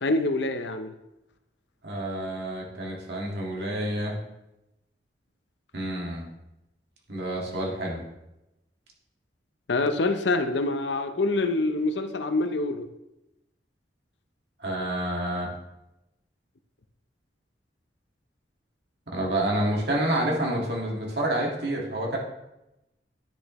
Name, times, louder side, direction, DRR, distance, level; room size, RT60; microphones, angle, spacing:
voice 1, 0.0-0.9 9.7-12.9, left 2 dB, 75° left, 9 dB, 0.7 m, -26 dB
voice 2, 1.8-4.2 5.7-6.3 7.1-8.0 14.6-15.5 19.1-22.2, right 1 dB, 65° right, -2 dB, 1.8 m, -28 dB
10.0 x 6.5 x 3.1 m, 0.92 s
head